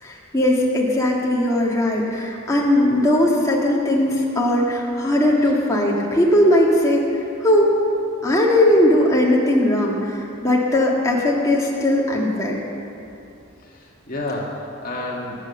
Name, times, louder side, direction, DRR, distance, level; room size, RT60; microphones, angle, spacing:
voice 1, 0.0-7.1 7.4-7.7 8.2-12.6, left 1 dB, 15° left, -3 dB, 1.9 m, -19 dB
voice 2, 13.6-15.4, left 2 dB, 40° left, -2 dB, 1.8 m, -30 dB
22.5 x 8.9 x 6.7 m, 2.7 s
head